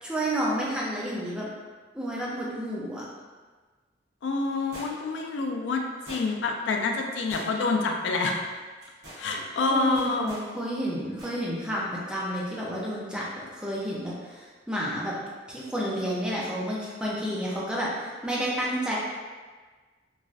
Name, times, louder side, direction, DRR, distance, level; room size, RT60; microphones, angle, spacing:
voice 1, 0.0-1.5 1.9-3.1 9.7-15.2 15.5-19.0, equal, 5° right, -6 dB, 0.4 m, -30 dB
voice 2, 4.2-5.8 6.1-8.4 9.2-10.3, left 3 dB, 85° left, 2 dB, 0.3 m, -27 dB
sound 1, 4.7-5.2 6.1-6.6 7.3-7.8 8.1-8.3 8.8-9.3 10.0-10.5 11.2-11.4 11.7-11.8, right 1 dB, 60° right, 1.1 m, -43 dB
3.1 x 2.3 x 2.4 m, 1.4 s
head